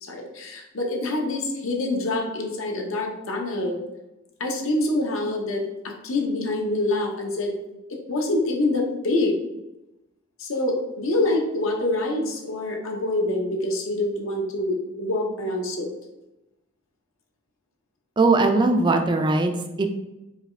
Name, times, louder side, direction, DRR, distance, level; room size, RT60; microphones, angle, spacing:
voice 1, 0.0-3.8 4.4-7.5 8.1-9.4 10.4-15.9, left 2 dB, 65° left, 1 dB, 0.8 m, -26 dB
voice 2, 18.2-19.9, right 3 dB, 20° right, 5 dB, 0.3 m, -20 dB
4.8 x 2.4 x 3.2 m, 0.96 s
head